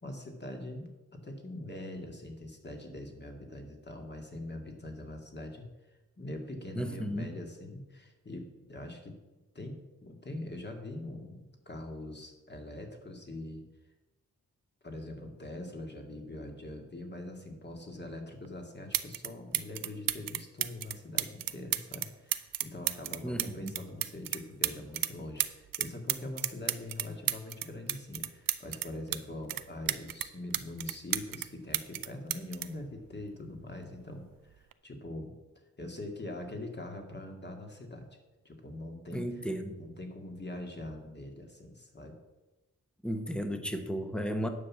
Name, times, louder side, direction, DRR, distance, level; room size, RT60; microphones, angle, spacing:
voice 1, 0.0-5.7 6.2-9.1 9.5-13.6 14.8-35.4 35.8-38.1 38.4-39.5 39.7-42.1, left 1 dB, 30° left, 3 dB, 2.0 m, -43 dB
voice 2, 6.7-7.3 23.2-23.7 39.1-39.8 43.0-44.5, equal, 5° left, 7 dB, 1.0 m, -34 dB
sound 1, 18.4-18.5 18.9-19.3 19.5-25.1 25.4-29.2 29.5-31.5 31.7-33.6 34.5-34.7, right 11 dB, 85° right, 0.6 m, -33 dB
9.7 x 6.0 x 7.3 m, 1.1 s
wide cardioid pair, 110°, 33 cm